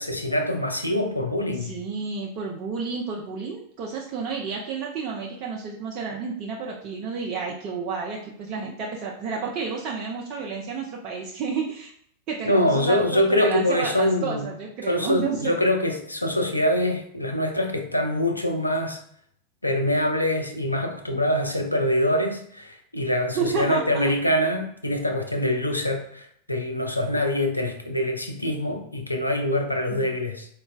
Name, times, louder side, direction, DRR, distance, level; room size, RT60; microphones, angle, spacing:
voice 1, 0.0-1.7 12.5-14.5 14.8-19.0 19.6-30.5, left 1 dB, 85° left, 4 dB, 0.4 m, -24 dB
voice 2, 1.5-11.9 12.3-15.5 23.3-24.0 29.9-30.1, right 5 dB, 40° right, -2 dB, 0.4 m, -31 dB
4.0 x 2.2 x 2.3 m, 0.66 s
figure-of-eight pair, 90°, 0 cm